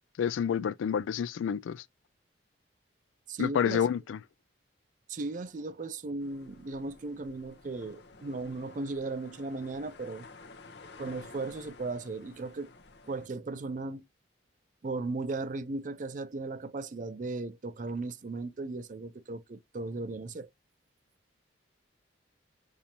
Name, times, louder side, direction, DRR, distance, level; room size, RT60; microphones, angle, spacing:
voice 1, 0.2-1.8 3.4-4.2, left 8 dB, 80° left, 0.3 m, -29 dB
voice 2, 3.3-3.9 5.1-10.3 11.0-12.7 13.0-14.0 14.8-20.5, right 3 dB, 40° right, 0.4 m, -36 dB
sound 1, 6.2-13.3, left 3 dB, 60° left, 0.8 m, -52 dB
6.7 x 2.8 x 2.8 m
head